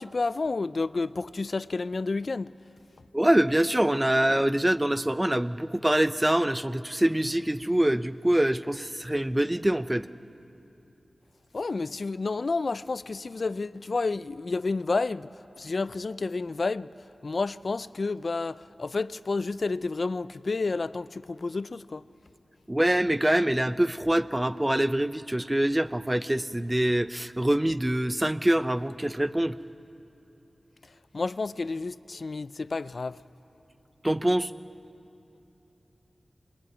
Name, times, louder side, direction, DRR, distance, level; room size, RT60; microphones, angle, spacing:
voice 1, 0.0-2.5 11.5-15.3 15.6-16.9 17.2-22.0 31.1-33.2, left 3 dB, 55° left, 0.5 m, -30 dB
voice 2, 3.1-10.1 22.7-29.6 34.0-34.5, right 1 dB, 15° right, 0.7 m, -25 dB
26.0 x 23.0 x 9.5 m
wide cardioid pair, 90°, 0 cm